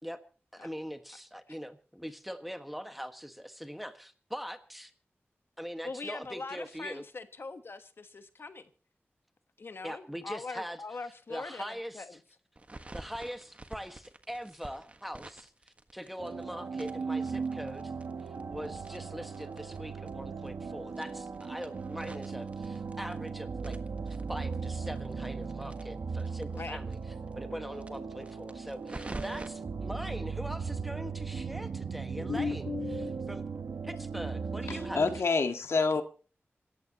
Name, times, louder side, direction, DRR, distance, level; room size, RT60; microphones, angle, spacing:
voice 1, 0.5-4.9 5.6-7.0 9.8-10.8 11.3-12.0 12.9-17.9 18.2-23.8 24.1-27.0 27.3-33.5 33.8-35.1, equal, ahead, 8 dB, 1.5 m, -42 dB
voice 2, 5.8-8.7 9.6-12.2 26.5-26.8, left 3 dB, 60° left, 9 dB, 1.3 m, -42 dB
sound 1, 12.6-16.4 16.7-19.8 20.1-20.2 20.4-20.5 20.9-23.3 23.6-26.6 26.9-27.0 27.3-27.4 27.8-29.5, right 2 dB, 30° right, 1.4 m, -47 dB
sound 2, 16.2-35.2, right 5 dB, 85° right, 1.1 m, -38 dB
voice 3, 32.2-33.1 34.7-36.0, left 4 dB, 90° left, 6 dB, 1.8 m, -29 dB
26.5 x 14.0 x 3.0 m, 0.38 s
wide cardioid pair, 105°, 4 cm